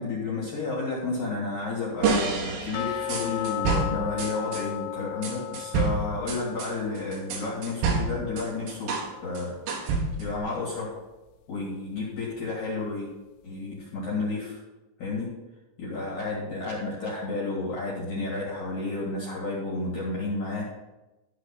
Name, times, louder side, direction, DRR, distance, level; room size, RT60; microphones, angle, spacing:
voice 1, 0.0-9.5 9.8-10.9 11.5-13.1 13.4-14.6 15.0-15.3 15.8-20.6, left 3 dB, 45° left, -6 dB, 3.1 m, -31 dB
sound 1, 2.0-4.7 5.2-9.1 9.4-10.4, right 4 dB, 70° right, 3.2 m, -28 dB
sound 2, 2.7-9.6 9.9-10.0 10.5-10.6 11.1-11.2, left 13 dB, 85° left, 3.2 m, -36 dB
13.5 x 4.9 x 5.8 m, 1.0 s
omnidirectional pair, 5.9 m